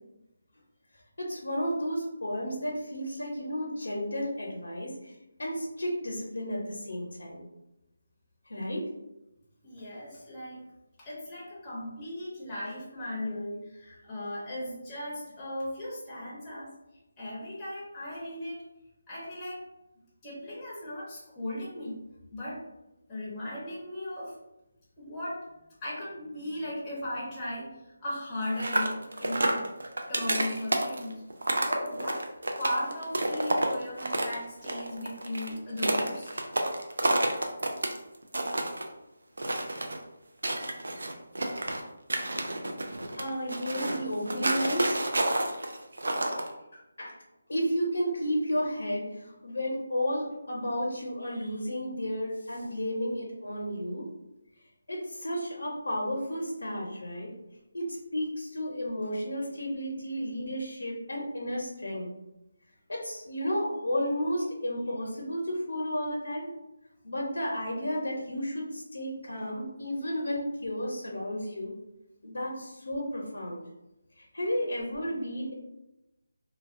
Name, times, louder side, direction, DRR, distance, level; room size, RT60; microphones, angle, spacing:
voice 1, 1.2-4.9 5.4-7.5 8.5-8.9 43.2-45.0 46.7-47.2 47.5-54.1 54.9-57.3 57.7-62.1 62.9-66.5 67.0-71.7 72.2-73.6 74.2-75.5, equal, 85° left, -1 dB, 0.6 m, -32 dB
voice 2, 9.6-10.6 11.0-16.7 17.2-18.6 19.1-19.6 20.2-22.0 22.3-22.6 23.1-24.3 25.0-25.5 25.8-29.6 30.1-31.1 31.6-32.2 32.6-36.3, left 1 dB, 10° left, -8 dB, 0.6 m, -37 dB
sound 1, 28.4-34.3 34.6-38.0 38.2-38.8 39.4-40.0 40.4-41.8 42.1-46.5, right 1 dB, 75° right, 0.4 m, -29 dB
2.3 x 2.1 x 2.5 m, 0.93 s
figure-of-eight pair, 175°, 0 cm